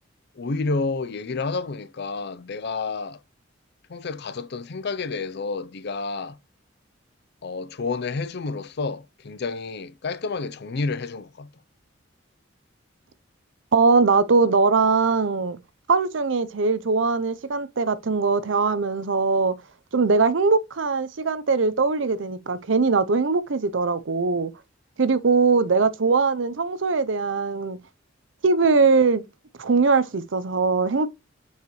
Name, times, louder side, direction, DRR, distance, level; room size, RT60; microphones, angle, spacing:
voice 1, 0.4-3.2 3.9-6.4 7.4-11.5, left 4 dB, 60° left, 0.6 m, -30 dB
voice 2, 13.7-15.6 15.9-19.5 19.9-24.5 25.0-27.8 28.4-29.2 29.6-31.1, right 4 dB, 70° right, 0.6 m, -21 dB
6.6 x 4.8 x 3.1 m
head